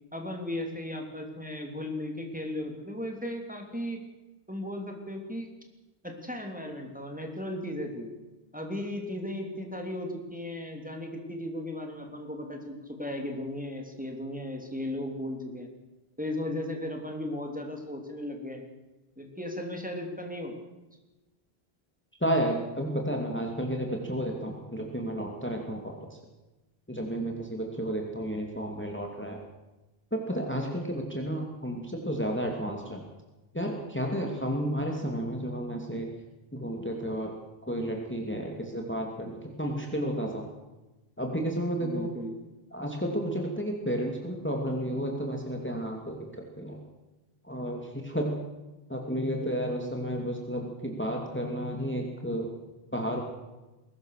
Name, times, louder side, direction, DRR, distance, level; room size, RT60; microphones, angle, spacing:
voice 1, 0.1-4.0 4.5-5.5 6.0-8.2 8.5-15.7 16.2-18.6 19.2-20.5 41.8-42.4 49.4-49.5, left 1 dB, 10° right, 2 dB, 3.1 m, -36 dB
voice 2, 22.2-26.0 26.9-29.4 30.1-33.0 33.5-36.1 36.5-37.3 37.7-40.4 41.2-42.1 42.7-46.8 47.4-48.3 48.9-52.5 52.9-53.2, equal, 10° left, 1 dB, 2.6 m, -32 dB
22.0 x 18.5 x 6.6 m, 1.1 s
omnidirectional pair, 1.1 m